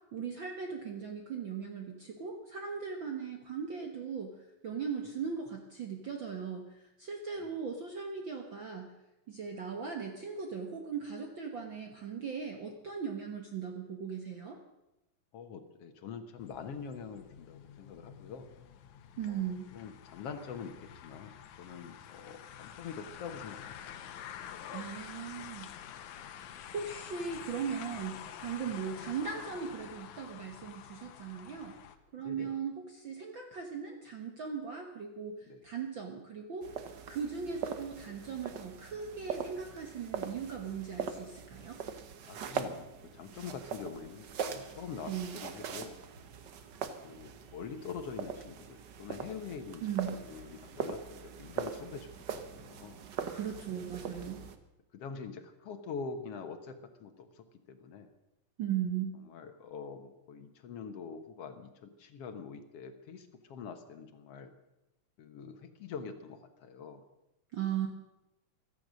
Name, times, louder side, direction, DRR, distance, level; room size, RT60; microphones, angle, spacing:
voice 1, 0.1-8.9 9.3-14.6 19.2-19.7 24.7-25.7 26.4-31.7 32.1-36.7 37.1-41.8 45.0-45.4 49.8-50.2 53.3-54.4 58.6-59.2 67.5-67.9, right 7 dB, 50° right, 3 dB, 1.6 m, -38 dB
voice 2, 15.3-18.5 19.3-23.8 32.2-32.5 35.5-35.6 42.2-46.0 47.0-49.8 50.1-53.0 54.9-58.1 59.3-64.5 65.2-67.0, left 6 dB, 60° left, 8 dB, 2.0 m, -45 dB
sound 1, 16.4-32.0, left 9 dB, 75° left, 2.3 m, -48 dB
sound 2, 36.6-54.6, right 7 dB, 90° right, 0.9 m, -42 dB
15.5 x 13.5 x 6.4 m, 0.95 s
omnidirectional pair, 3.5 m